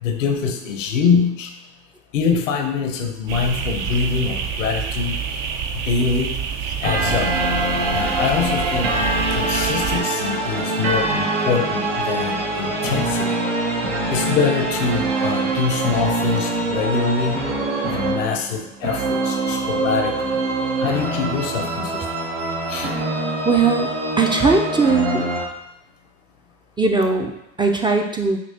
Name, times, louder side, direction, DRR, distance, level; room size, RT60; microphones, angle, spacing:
voice 1, 0.0-1.5 2.1-5.2 5.8-6.4 6.8-7.4 7.9-8.9 9.3-13.4 14.1-17.4 17.9-20.4 20.8-22.1 22.7-22.9, left 5 dB, 85° left, 6 dB, 0.7 m, -24 dB
sound 1, 3.3-10.0, right 6 dB, 55° right, 0.6 m, -27 dB
sound 2, 6.8-25.5, right 2 dB, 80° right, 1.0 m, -24 dB
voice 2, 23.4-23.9 24.2-25.3 26.8-28.4, right 4 dB, 15° right, 3 dB, 0.3 m, -19 dB
5.3 x 2.9 x 2.7 m, 0.82 s
hypercardioid pair, 80°, 37 cm